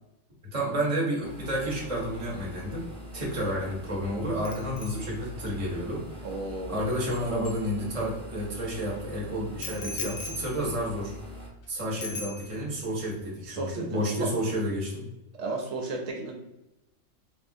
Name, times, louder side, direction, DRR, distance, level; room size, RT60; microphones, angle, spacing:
voice 1, 0.5-2.9 3.1-6.0 6.7-11.1 11.7-15.0, equal, 30° right, -4 dB, 0.9 m, -30 dB
sound 1, 1.2-11.5, left 1 dB, 10° left, 0.4 m, -44 dB
Bicycle bell, 4.4-8.3 9.6-11.7 12.0-12.9 13.2-13.4, left 5 dB, 65° left, 0.6 m, -42 dB
voice 2, 6.2-6.8 13.4-14.3 15.4-16.3, right 3 dB, 80° right, 0 dB, 1.0 m, -34 dB
3.5 x 2.4 x 2.6 m, 0.93 s
omnidirectional pair, 1.3 m